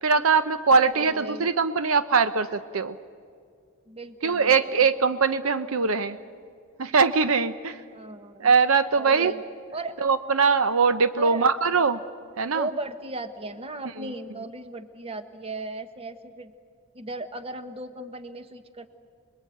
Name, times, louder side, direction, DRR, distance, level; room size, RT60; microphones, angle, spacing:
voice 1, 0.0-3.0 4.2-6.2 6.8-7.8 8.4-9.3 10.0-12.0 12.4-12.7 14.0-14.1, right 5 dB, 75° right, 12 dB, 0.7 m, -22 dB
voice 2, 0.9-1.5 3.9-4.8 7.9-8.5 9.0-9.4 9.7-10.0 11.2-11.4 12.5-16.5 16.9-18.9, right 2 dB, 25° right, 9 dB, 1.2 m, -36 dB
26.5 x 21.0 x 9.1 m, 2.2 s
head